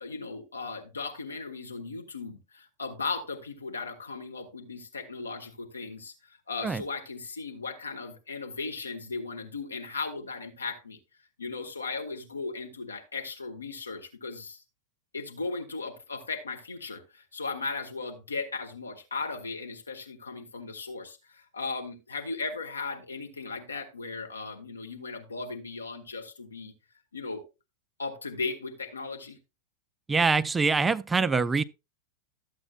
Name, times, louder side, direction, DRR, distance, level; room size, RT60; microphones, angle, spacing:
voice 1, 0.0-11.0 11.4-14.6 15.1-26.7 27.1-27.4 28.0-29.4, left 4 dB, 75° left, 1.3 m, -37 dB
voice 2, 30.1-31.6, right 4 dB, 15° right, 0.3 m, -24 dB
13.0 x 8.0 x 2.4 m
figure-of-eight pair, 90°, 0 cm